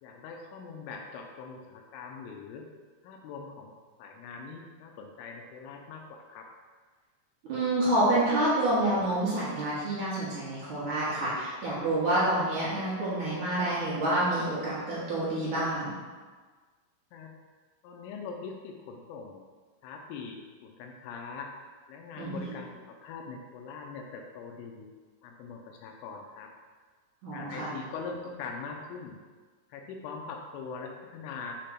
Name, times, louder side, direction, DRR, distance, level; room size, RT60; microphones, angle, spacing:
voice 1, 0.0-2.7 3.0-3.7 4.0-6.5 17.1-17.3 17.8-19.4 19.8-21.5 21.9-24.9 25.2-26.5 27.3-29.2 29.7-31.6, left 5 dB, 80° left, 2 dB, 3.1 m, -42 dB
voice 2, 7.5-15.9 22.2-22.4 27.2-27.7, right 1 dB, 60° right, -9 dB, 2.2 m, -28 dB
7.4 x 3.4 x 5.8 m, 1.4 s
omnidirectional pair, 5.8 m